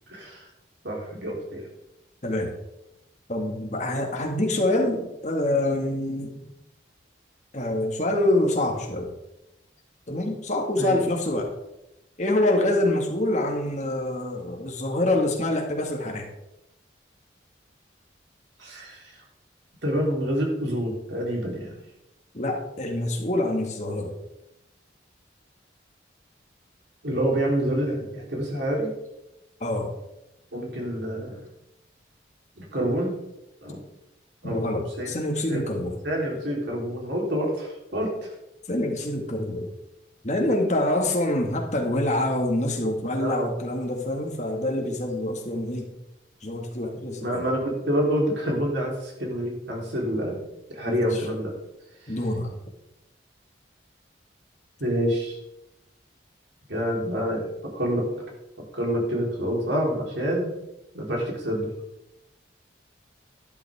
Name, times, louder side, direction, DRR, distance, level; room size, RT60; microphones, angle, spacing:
voice 1, 0.1-0.4 0.8-1.7 10.8-11.0 18.6-19.0 19.8-21.7 27.0-28.9 30.5-31.4 32.6-33.1 33.6-33.8 34.4-35.1 35.5-35.7 36.0-38.1 43.2-43.5 47.2-50.4 50.7-51.5 52.1-52.2 54.8-55.4 56.7-57.5 57.7-58.1 58.7-60.5 60.9-61.7, equal, 75° right, -2 dB, 3.8 m, -27 dB
voice 2, 3.3-6.3 7.5-9.1 10.1-11.5 12.2-16.3 22.3-24.2 29.6-29.9 34.4-36.0 38.7-39.7 40.2-45.9 46.4-47.4 50.9-51.2 52.1-52.6, left 1 dB, 40° left, 1 dB, 2.0 m, -26 dB
11.5 x 11.5 x 3.6 m, 0.89 s
head